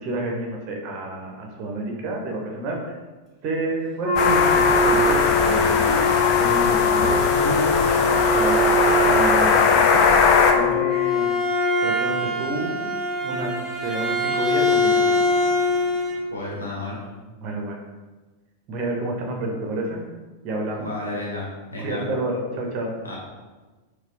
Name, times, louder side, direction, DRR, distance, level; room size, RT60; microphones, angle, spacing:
voice 1, 0.0-2.9 3.4-6.1 6.4-10.0 10.5-11.4 11.8-12.9 13.2-15.1 17.4-17.8 18.7-20.0 20.4-20.9 21.8-23.0, right 1 dB, 40° right, 1 dB, 0.6 m, -29 dB
Wind instrument woodwind instrument, 4.0-11.9, left 3 dB, 20° left, 1.4 m, -22 dB
sound 1, 4.2-10.5, left 5 dB, 40° left, 0.3 m, -20 dB
Bowed string instrument, 10.7-16.2, left 1 dB, 5° right, 0.7 m, -23 dB
voice 2, 16.3-17.0 20.8-22.0 23.0-23.2, left 2 dB, 75° left, -4 dB, 0.9 m, -32 dB
4.1 x 2.2 x 2.5 m, 1.2 s
figure-of-eight pair, 90°, 0 cm